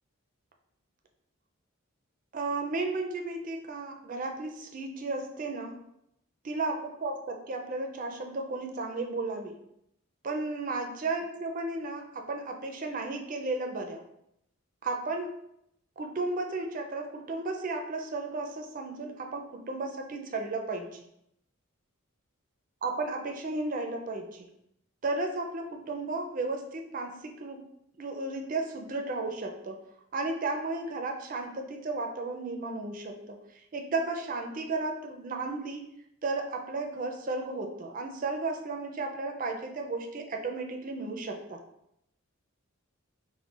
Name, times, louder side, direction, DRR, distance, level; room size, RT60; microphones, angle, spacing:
voice 1, 2.3-5.8 6.4-9.6 10.2-14.0 14.8-15.4 16.0-21.0 22.8-24.5 25.0-27.7 28.0-29.8 30.1-33.4 33.7-35.9 36.2-41.6, right 3 dB, 40° right, 3 dB, 0.4 m, -34 dB
5.3 x 2.1 x 2.4 m, 0.78 s
head